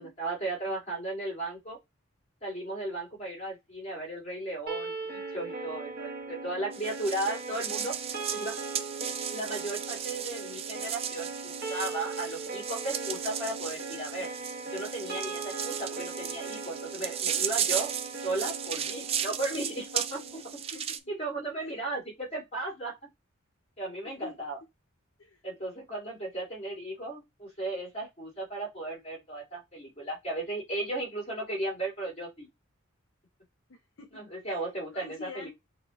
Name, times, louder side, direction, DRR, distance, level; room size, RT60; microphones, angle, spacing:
voice 1, 0.0-1.8 2.4-7.9 8.3-8.6 9.3-14.3 14.7-17.9 18.2-20.4 21.1-23.0 23.8-24.6 25.4-32.5 34.1-35.5, right 2 dB, 30° left, 2.0 m, -35 dB
sound 1, 4.7-20.7, right 3 dB, 50° right, 0.8 m, -39 dB
sound 2, 6.7-21.0, right 8 dB, 30° right, 0.3 m, -35 dB
voice 2, 20.3-21.1 21.6-21.8 24.0-24.3 25.2-25.4 33.7-34.2 34.5-35.5, left 4 dB, 70° left, 0.7 m, -48 dB
6.3 x 2.2 x 2.9 m
head